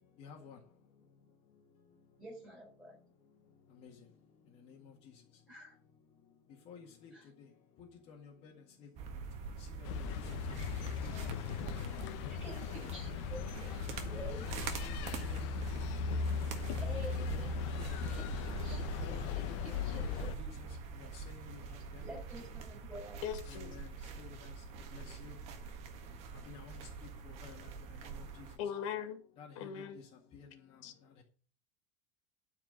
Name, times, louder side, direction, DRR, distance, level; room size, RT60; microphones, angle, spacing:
voice 1, 0.2-0.6 3.8-3.9 6.7-7.1 8.1-8.5 9.6-10.0 11.0-11.1 11.8-12.0 14.8-14.9 15.2-15.4 16.1-16.2 16.5-16.7 19.0-19.3 19.9-20.5 21.0-21.6 21.9-22.0 23.5-23.9 24.2-24.5 24.9-25.3 26.5-26.8 27.2-27.7 29.4-29.5 30.3-30.5, left 6 dB, 40° left, 1.9 m, -52 dB
voice 2, 2.2-3.0 5.5-5.8 7.1-7.3 12.3-14.9 16.8-17.8 18.1-20.3 22.0-23.2, right 1 dB, 5° right, 6.8 m, -49 dB
sound 1, 9.0-28.6, right 2 dB, 40° right, 1.6 m, -42 dB
sound 2, 9.8-20.3, left 11 dB, 65° left, 1.0 m, -40 dB
voice 3, 23.2-23.7 28.6-29.2 29.6-30.0 30.8-30.9, left 8 dB, 85° left, 2.4 m, -39 dB
13.0 x 4.8 x 7.8 m
cardioid pair, 170°, 16 cm